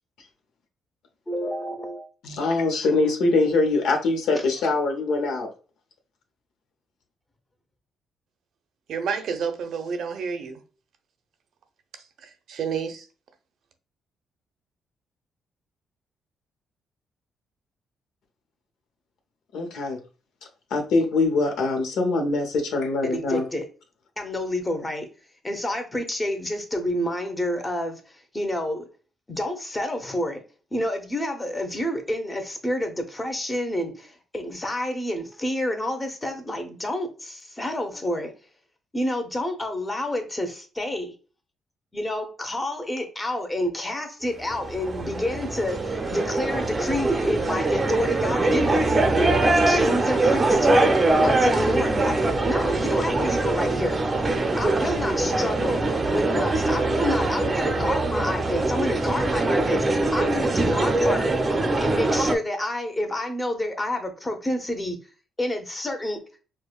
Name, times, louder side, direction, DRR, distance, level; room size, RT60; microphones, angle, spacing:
voice 1, 1.3-2.1 23.0-23.7 24.2-25.1 25.4-28.0 28.3-28.9 29.3-30.4 30.7-38.3 38.9-41.1 41.9-48.9 49.4-51.0 51.2-54.0 54.6-55.8 56.1-61.3 61.8-65.0 65.4-66.2, left 1 dB, 20° left, 0.8 m, -29 dB
voice 2, 2.2-5.5 19.5-20.0 20.7-23.5, left 3 dB, 80° left, 0.8 m, -23 dB
voice 3, 8.9-10.6 12.2-13.1, right 6 dB, 70° right, 0.6 m, -29 dB
sound 1, 44.4-62.4, right 2 dB, 25° right, 0.6 m, -23 dB
4.8 x 2.2 x 2.3 m
cardioid pair, 90°, 0 cm